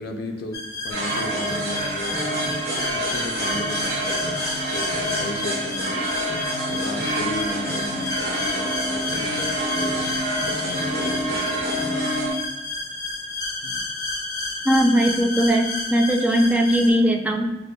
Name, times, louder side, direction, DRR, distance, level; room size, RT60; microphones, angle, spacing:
voice 1, 0.0-4.4 4.7-11.9 13.6-13.9, left 2 dB, 55° left, 3 dB, 0.4 m, -35 dB
sound 1, 0.5-16.9, left 3 dB, 20° left, 0.8 m, -31 dB
sound 2, 0.9-12.3, right 1 dB, 55° right, 1.1 m, -27 dB
voice 2, 14.6-17.5, equal, 10° right, 1 dB, 0.3 m, -19 dB
6.4 x 2.2 x 2.2 m, 0.97 s
head